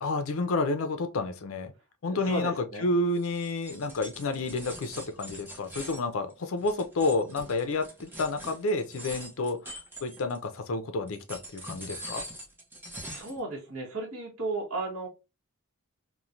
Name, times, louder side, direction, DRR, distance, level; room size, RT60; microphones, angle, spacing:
voice 1, 0.0-1.7 2.0-9.7 10.0-12.2, left 2 dB, 75° left, 0.5 m, -30 dB
voice 2, 2.1-2.9 13.1-15.1, right 2 dB, 90° right, 1.1 m, -34 dB
sound 1, 3.1-10.6 11.1-13.4, equal, 10° right, 0.7 m, -44 dB
3.0 x 2.1 x 2.5 m
head